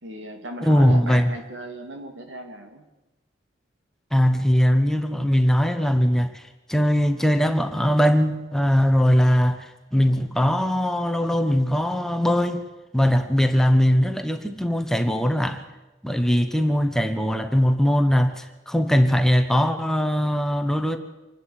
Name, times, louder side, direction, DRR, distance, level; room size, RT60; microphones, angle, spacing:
voice 1, 0.0-2.9, right 1 dB, 80° right, 5 dB, 2.9 m, -36 dB
voice 2, 0.6-1.3 4.1-12.6 12.9-15.7 16.0-21.0, equal, ahead, 7 dB, 1.1 m, -20 dB
26.0 x 12.0 x 8.9 m, 1.1 s
head